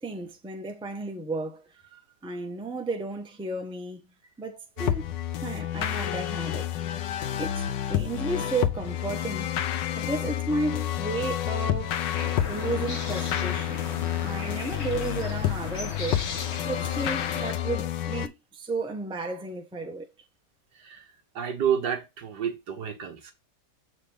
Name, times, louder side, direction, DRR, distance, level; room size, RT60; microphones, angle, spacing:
voice 1, 0.0-4.0 4.4-6.7 7.4-9.6 10.0-12.0 12.4-13.8 14.2-16.3 16.6-20.1, right 3 dB, 5° right, 0.8 m, -33 dB
sound 1, 4.8-18.3, left 11 dB, 90° left, 1.4 m, -29 dB
sound 2, 12.1-17.5, left 5 dB, 40° left, 1.4 m, -37 dB
voice 2, 20.8-23.3, right 8 dB, 70° right, 1.9 m, -30 dB
7.0 x 5.0 x 3.4 m
omnidirectional pair, 1.9 m